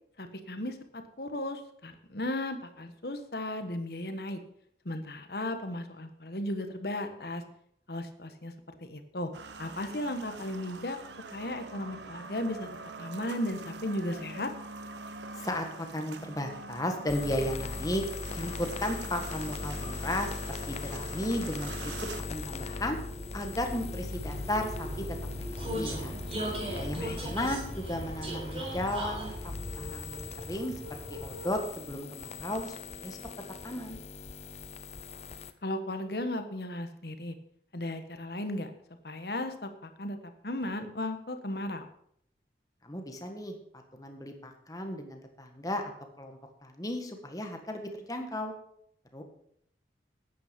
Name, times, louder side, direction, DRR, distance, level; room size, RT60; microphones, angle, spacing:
voice 1, 0.2-4.4 4.8-7.4 7.9-8.5 8.8-9.3 9.6-11.0 11.3-12.7 13.0-14.5 26.9-27.3 35.6-37.3 37.7-38.7 39.0-40.2 40.4-41.9, left 1 dB, 60° left, 8 dB, 1.3 m, -35 dB
sound 1, 9.3-22.2, right 4 dB, 80° right, 1.1 m, -44 dB
voice 2, 15.3-18.0 18.3-20.3 20.7-21.9 22.3-23.0 23.3-25.0 25.6-26.1 26.8-33.2 33.6-34.0 42.8-45.8 46.2-48.5 49.1-49.2, left 1 dB, 20° left, 4 dB, 1.5 m, -35 dB
sound 2, 17.1-35.5, left 4 dB, 35° left, 0.6 m, -40 dB
Vehicle, 20.6-31.8, right 1 dB, 35° right, 4.2 m, -40 dB
11.5 x 9.5 x 5.2 m, 0.70 s
head